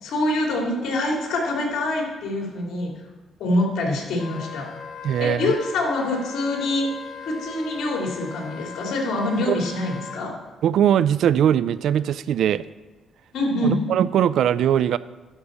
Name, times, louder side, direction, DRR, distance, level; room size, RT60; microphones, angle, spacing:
voice 1, 0.0-2.9 3.4-4.6 5.2-6.9 7.2-10.3 13.3-13.8, left 1 dB, 75° left, -1 dB, 3.0 m, -25 dB
Wind instrument woodwind instrument, 4.2-10.2, left 5 dB, 60° left, 1.0 m, -38 dB
voice 2, 5.0-5.5 9.5-9.6 10.6-12.6 13.6-15.0, right 10 dB, 75° right, 17 dB, 0.4 m, -20 dB
12.0 x 5.0 x 6.8 m, 1.2 s
cardioid pair, 90°, 0 cm